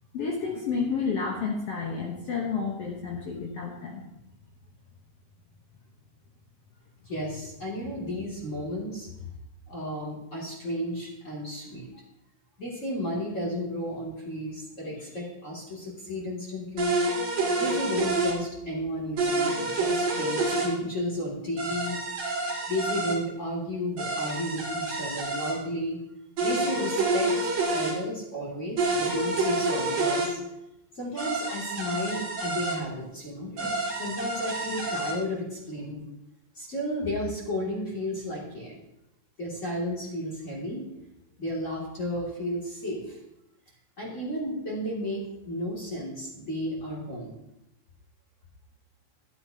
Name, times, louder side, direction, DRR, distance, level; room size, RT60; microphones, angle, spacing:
voice 1, 0.1-4.0, left 5 dB, 70° left, -1 dB, 1.5 m, -30 dB
voice 2, 7.1-9.3 9.7-11.9 12.6-16.9 17.6-22.4 22.7-26.0 26.4-30.4 30.9-36.0 36.5-38.8 39.4-40.8 41.4-43.2 44.0-47.3, equal, 25° left, -4 dB, 2.2 m, -33 dB
sound 1, 16.8-18.4 19.2-20.7 21.6-23.2 24.0-25.6 26.4-27.9 28.8-30.3 31.2-32.8 33.6-35.2, right 2 dB, 50° right, 2.9 m, -28 dB
12.0 x 11.0 x 2.8 m, 0.87 s
omnidirectional pair, 4.1 m